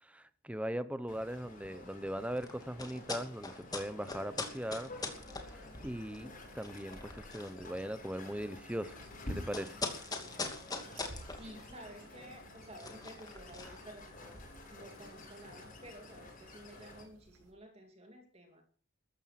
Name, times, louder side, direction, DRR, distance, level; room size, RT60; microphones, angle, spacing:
voice 1, 0.0-5.0 5.4-9.0 9.3-9.8, equal, 5° right, 0.9 m, -40 dB
sound 1, 1.1-17.0, left 1 dB, 40° left, 7.3 m, -50 dB
sound 2, 2.3-14.4, left 3 dB, 15° left, 2.6 m, -44 dB
sound 3, 5.1-17.5, right 1 dB, 90° right, 7.0 m, -59 dB
voice 2, 11.2-14.4 14.7-18.6, right 1 dB, 30° right, 2.7 m, -53 dB
14.0 x 13.5 x 6.0 m
head